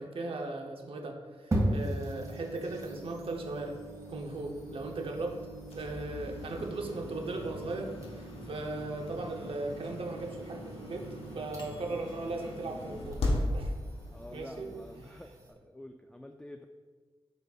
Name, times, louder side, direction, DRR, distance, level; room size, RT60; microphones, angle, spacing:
voice 1, 0.0-3.8 4.1-5.4 5.7-11.1 11.3-13.2 13.5-13.7 14.3-14.7 15.1-15.2, right 2 dB, 65° right, 1 dB, 0.8 m, -37 dB
Microwave oven, 1.5-15.0, right 3 dB, 50° left, 1.0 m, -49 dB
sound 1, 1.5-15.5, right 1 dB, 35° right, 1.8 m, -41 dB
sound 2, 4.0-15.1, left 1 dB, 85° left, 1.1 m, -39 dB
voice 2, 14.1-16.7, left 1 dB, 10° left, 5 dB, 0.3 m, -48 dB
10.5 x 4.0 x 2.4 m, 1.4 s
cardioid pair, 75°, 10 cm